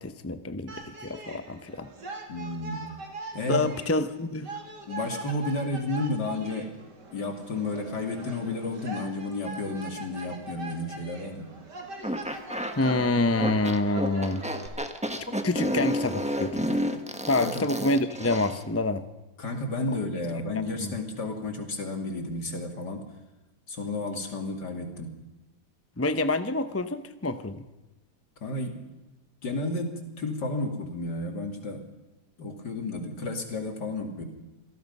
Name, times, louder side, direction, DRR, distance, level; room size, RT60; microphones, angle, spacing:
voice 1, 0.0-1.9 3.5-4.5 12.8-14.4 15.3-16.7 17.3-19.0 20.8-20.9 26.0-27.6, left 2 dB, 15° left, 10 dB, 0.4 m, -27 dB
sound 1, 0.7-14.7, right 3 dB, 75° right, 3.5 m, -42 dB
voice 2, 2.3-2.9 3.3-3.7 4.9-6.7 7.1-11.5 17.4-17.7 19.4-23.0 23.7-25.1 28.4-28.8 29.4-31.8 32.4-34.2, left 2 dB, 70° left, 4 dB, 3.1 m, -32 dB
sound 2, 12.0-18.6, equal, 5° right, 1.3 m, -30 dB
27.0 x 18.0 x 5.5 m, 1.1 s
omnidirectional pair, 1.9 m